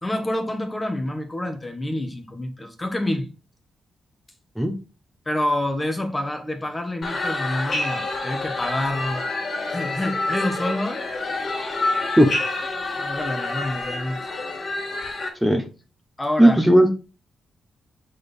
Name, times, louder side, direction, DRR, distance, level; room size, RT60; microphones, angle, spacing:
voice 1, 0.0-3.3 5.2-9.2 9.7-11.0 13.0-14.2 16.2-16.6, left 1 dB, 20° left, 1.3 m, -27 dB
sound 1, 7.0-15.3, left 2 dB, 45° left, 2.3 m, -28 dB
voice 2, 16.4-17.0, right 1 dB, ahead, 1.0 m, -15 dB
7.4 x 4.1 x 3.5 m
cardioid pair, 85°, 0 cm